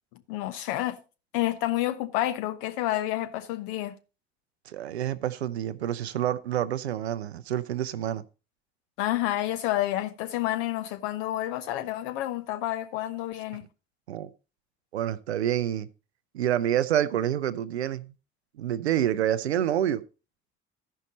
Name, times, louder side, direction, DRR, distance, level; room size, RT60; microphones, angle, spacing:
voice 1, 0.3-1.0 1.3-3.9 9.0-13.7, left 14 dB, 70° left, 1.0 m, -29 dB
voice 2, 4.7-8.2 14.1-14.3 14.9-15.9 16.3-18.1 18.6-20.0, right 11 dB, 90° right, 0.5 m, -27 dB
14.0 x 5.5 x 3.9 m
hypercardioid pair, 50°, 32 cm